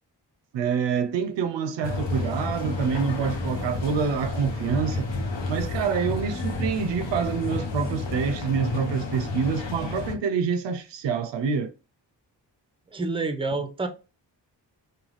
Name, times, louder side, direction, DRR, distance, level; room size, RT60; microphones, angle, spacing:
voice 1, 0.5-5.1 5.5-11.7, right 6 dB, 70° right, 0.5 m, -27 dB
sound 1, 1.8-10.1, left 2 dB, 70° left, 0.9 m, -31 dB
voice 2, 12.9-13.9, right 3 dB, 10° right, 0.6 m, -28 dB
2.3 x 2.3 x 3.1 m
supercardioid pair, 40°, 45 cm